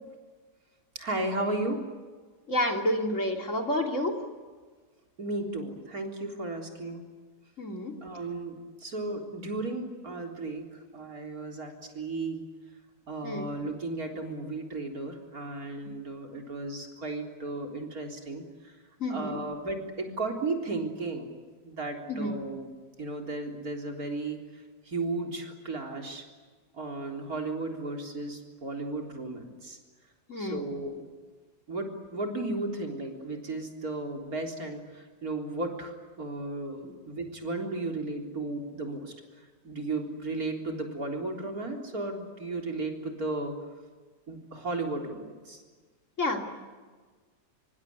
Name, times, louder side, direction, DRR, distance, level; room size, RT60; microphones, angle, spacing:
voice 1, 1.0-1.8 5.2-7.0 8.0-8.5 8.8-12.4 13.1-18.7 19.1-21.3 21.6-22.7 23.0-24.4 24.9-26.2 26.7-29.8 30.4-31.0 31.7-39.1 39.6-43.6 44.3-45.6, right 2 dB, 55° right, 2 dB, 4.2 m, -34 dB
voice 2, 2.5-4.1 7.6-7.9 13.2-13.5 19.0-19.4 22.1-22.3 30.3-30.6 36.8-36.9 46.2-46.4, left 1 dB, 45° left, 3 dB, 3.3 m, -29 dB
25.0 x 24.0 x 9.6 m, 1.4 s
omnidirectional pair, 1.8 m